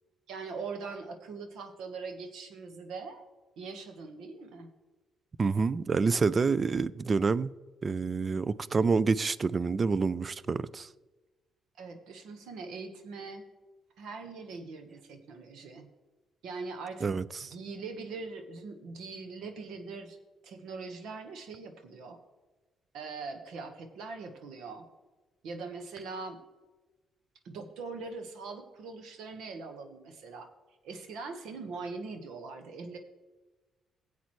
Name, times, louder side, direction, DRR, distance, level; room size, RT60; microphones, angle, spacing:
voice 1, 0.3-3.2 3.6-4.7 11.8-13.4 14.0-15.9 16.4-17.1 17.4-20.2 20.4-22.2 22.9-24.9 25.4-26.4 27.4-30.5 30.8-33.0, right 4 dB, 80° right, 1.3 m, -42 dB
voice 2, 5.4-7.5 7.8-10.9 17.0-17.5, right 4 dB, 35° right, 0.4 m, -28 dB
16.0 x 8.1 x 3.2 m
cardioid pair, 90°, 0 cm